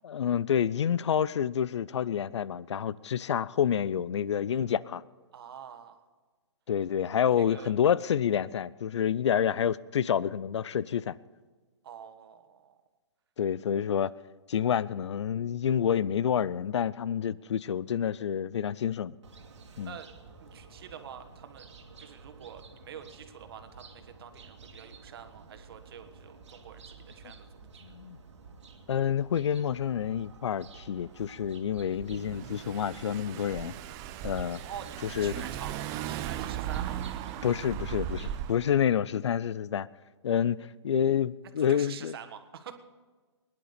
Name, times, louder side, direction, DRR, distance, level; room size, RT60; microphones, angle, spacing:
voice 1, 0.0-5.0 6.7-11.2 13.4-14.1 14.5-19.2 19.8-19.9 27.8-28.2 28.9-33.7 34.2-34.6 35.0-35.3 37.4-39.9 40.2-42.2, left 8 dB, 70° left, 0.5 m, -28 dB
voice 2, 5.3-6.0 7.4-7.7 11.8-12.8 19.8-20.1 20.4-21.7 22.0-27.5 27.8-27.9 34.6-37.0 41.6-42.8, right 8 dB, 55° right, 1.5 m, -46 dB
sound 1, 19.2-38.5, right 4 dB, 75° right, 2.0 m, -51 dB
Car / Engine, 31.8-38.7, right 11 dB, 20° right, 0.5 m, -37 dB
21.0 x 10.5 x 5.1 m
hypercardioid pair, 150°, 15 cm